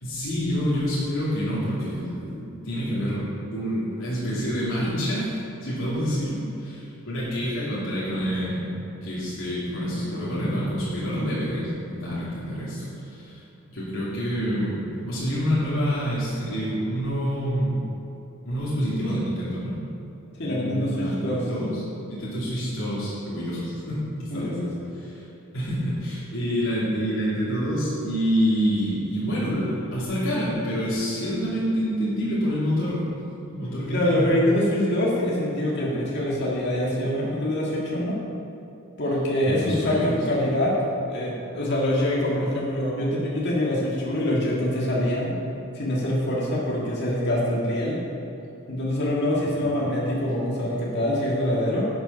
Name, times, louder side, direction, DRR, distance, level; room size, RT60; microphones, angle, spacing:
voice 1, 0.0-5.3 5.6-8.7 9.0-13.4 13.7-17.9 18.4-19.8 20.4-25.3 25.5-33.0 33.4-34.3 39.5-40.6 49.6-49.8, equal, 70° left, -10 dB, 2.9 m, -27 dB
voice 2, 20.4-21.4 24.3-24.6 33.9-38.2 39.0-40.7 41.1-45.3 45.7-48.0 48.7-51.9, left 1 dB, 55° left, -5 dB, 2.0 m, -24 dB
12.5 x 6.9 x 5.6 m, 2.9 s
head